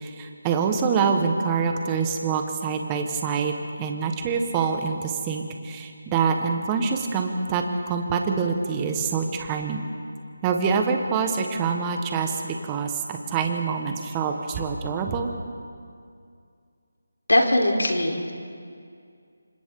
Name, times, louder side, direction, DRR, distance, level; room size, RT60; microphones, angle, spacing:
voice 1, 0.0-3.5 3.8-7.6 7.9-9.8 10.4-15.3, right 5 dB, 15° right, 4 dB, 1.5 m, -25 dB
voice 2, 17.3-18.3, left 1 dB, 90° left, 1 dB, 3.9 m, -20 dB
28.0 x 26.0 x 3.9 m, 2.3 s
figure-of-eight pair, 165°, 0 cm